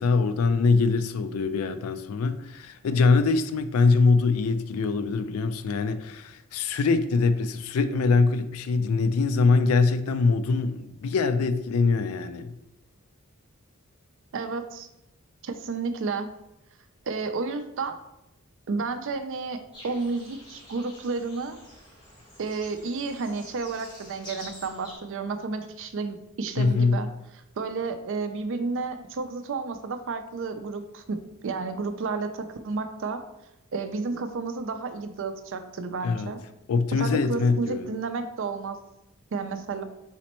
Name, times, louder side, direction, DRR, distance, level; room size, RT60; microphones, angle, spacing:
voice 1, 0.0-12.5 26.6-27.0 36.0-36.3 36.7-37.9, left 4 dB, 75° left, 11 dB, 0.4 m, -23 dB
voice 2, 14.3-14.9 15.4-16.3 17.1-18.0 18.7-21.6 22.4-27.1 27.6-33.2 33.7-36.4 37.0-38.8 39.3-39.8, right 4 dB, 60° right, 9 dB, 0.4 m, -31 dB
sound 1, 19.7-25.0, left 1 dB, 20° left, 1.4 m, -47 dB
4.2 x 4.1 x 3.0 m, 0.86 s
head